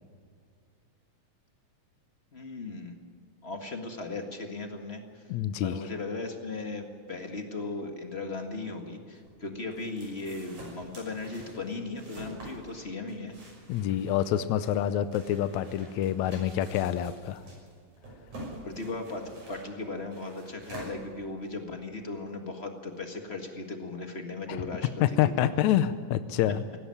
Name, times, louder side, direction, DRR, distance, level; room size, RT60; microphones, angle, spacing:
voice 1, 2.3-3.0 3.4-5.2 5.6-13.4 18.6-25.5, left 3 dB, 30° left, 4 dB, 1.4 m, -37 dB
voice 2, 5.3-5.8 13.7-17.4 25.0-26.6, left 11 dB, 75° left, 12 dB, 2.0 m, -27 dB
sound 1, 9.2-21.6, right 1 dB, 70° right, 7.6 m, -48 dB
17.0 x 17.0 x 9.8 m, 2.1 s
omnidirectional pair, 3.5 m